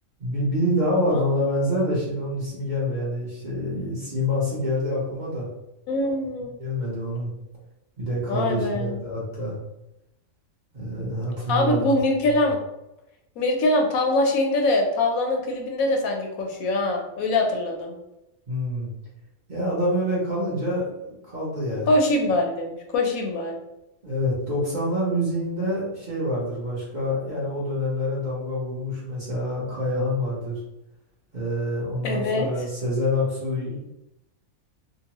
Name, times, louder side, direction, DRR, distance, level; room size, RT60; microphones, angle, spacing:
voice 1, 0.2-5.5 6.6-7.3 8.0-9.6 10.7-12.0 18.5-18.9 19.5-21.9 24.0-30.6 31.3-33.8, left 1 dB, 40° right, -7 dB, 0.9 m, -26 dB
voice 2, 5.9-6.5 8.3-9.0 11.5-12.6 13.4-17.9 21.9-23.6 32.0-32.5, left 2 dB, 80° left, 2 dB, 1.1 m, -23 dB
2.9 x 2.2 x 2.9 m, 0.89 s
omnidirectional pair, 1.5 m